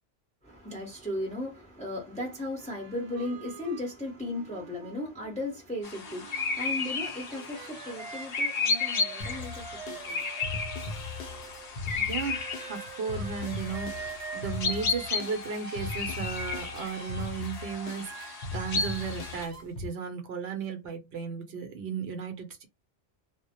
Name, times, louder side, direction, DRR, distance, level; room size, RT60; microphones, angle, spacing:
voice 1, 0.4-11.3 11.7-12.1, left 1 dB, 10° left, 0.6 m, -37 dB
sound 1, 2.6-5.6 5.9-11.7 12.2-19.6, right 5 dB, 55° right, 0.4 m, -45 dB
sound 2, 5.8-19.5, left 4 dB, 50° left, 0.5 m, -34 dB
sound 3, 9.2-19.9, left 4 dB, 80° left, 0.9 m, -39 dB
voice 2, 11.9-22.7, right 6 dB, 70° right, 0.8 m, -35 dB
2.1 x 2.0 x 2.8 m
omnidirectional pair, 1.2 m